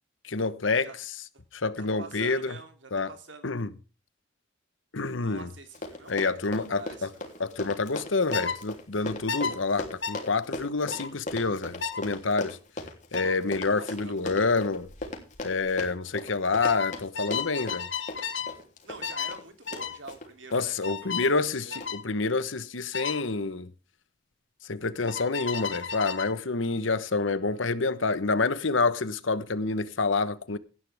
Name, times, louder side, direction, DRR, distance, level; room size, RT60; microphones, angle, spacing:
voice 1, 0.2-0.9 1.5-2.6 2.9-3.1 3.4-3.7 4.9-5.5 6.1-7.1 7.4-12.6 13.1-14.9 15.4-17.9 20.5-23.7 24.7-30.6, left 3 dB, 85° left, 1.1 m, -28 dB
voice 2, 1.8-3.5 5.2-7.7 13.7-14.5 18.8-21.9, right 3 dB, 75° right, 3.0 m, -47 dB
Run, 5.4-5.5 5.7-20.7 21.2-21.5 21.8-21.9, left 2 dB, 40° left, 3.3 m, -38 dB
sound 1, 8.3-8.6 9.3-9.5 10.0-10.2 10.9-11.1 11.8-12.0 13.1-13.4 14.8-15.1 15.3-15.7 16.6-18.5 19.0-19.4 19.7-20.0 20.8-21.3 21.7-22.0 22.9-23.2 25.1-26.3, left 6 dB, 70° left, 1.7 m, -33 dB
17.5 x 11.0 x 3.5 m
head